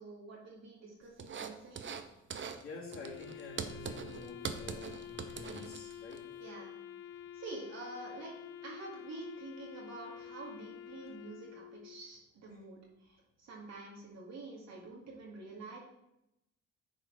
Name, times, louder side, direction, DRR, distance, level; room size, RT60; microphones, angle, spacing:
voice 1, 0.0-1.9 6.4-6.7 7.3-8.3 8.6-15.8, right 2 dB, 60° right, -3 dB, 2.2 m, -47 dB
sound 1, 1.2-2.0 2.3-2.6 2.9-6.2, right 6 dB, 40° right, 0.8 m, -42 dB
voice 2, 2.5-6.2 11.0-11.1, left 3 dB, 45° left, -4 dB, 3.4 m, -49 dB
Wind instrument woodwind instrument, 2.8-12.1, left 10 dB, 90° left, 0.7 m, -49 dB
9.8 x 4.4 x 4.7 m, 0.85 s
cardioid pair, 90°, 30 cm